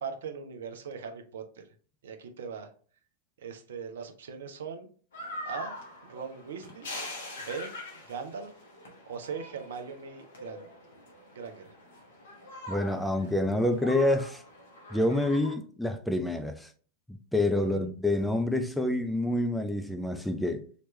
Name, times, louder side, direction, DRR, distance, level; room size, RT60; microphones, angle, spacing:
voice 1, 0.0-1.4 2.0-2.7 3.4-4.9 5.5-5.7 6.1-6.9 7.4-7.7 8.1-8.5 9.1-10.7 11.3-11.7 17.6-17.9, right 6 dB, 60° right, 0.6 m, -39 dB
sound 1, 5.1-15.6, left 1 dB, 60° left, 0.9 m, -44 dB
voice 2, 12.7-14.4 14.9-16.7 17.1-20.6, left 1 dB, ahead, 0.3 m, -27 dB
3.1 x 2.9 x 3.1 m
figure-of-eight pair, 90°, 0 cm